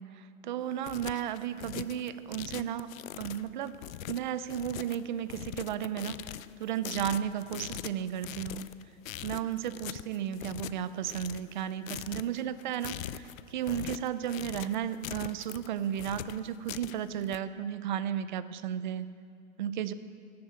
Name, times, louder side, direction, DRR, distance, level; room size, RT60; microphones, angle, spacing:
voice 1, 0.0-3.8 4.1-6.2 6.6-8.7 9.2-19.1 19.6-19.9, right 9 dB, 35° right, 14 dB, 0.5 m, -34 dB
sound 1, 0.6-17.4, left 12 dB, 75° left, 0.6 m, -42 dB
17.5 x 7.8 x 8.0 m, 2.3 s
supercardioid pair, 170°, 41 cm